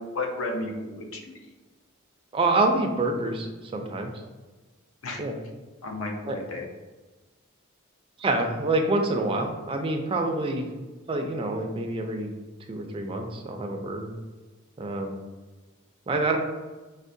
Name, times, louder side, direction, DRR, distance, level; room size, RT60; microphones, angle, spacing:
voice 1, 0.0-1.3 5.0-5.2 5.8-6.7, left 2 dB, 70° left, 2 dB, 0.5 m, -32 dB
voice 2, 2.3-3.5 3.7-4.1 5.2-5.3 6.3-6.4 8.2-10.7 11.1-12.3 12.7-14.1 14.8-15.1 16.1-16.4, right 2 dB, 25° right, 3 dB, 0.3 m, -26 dB
4.4 x 2.1 x 2.6 m, 1.2 s
head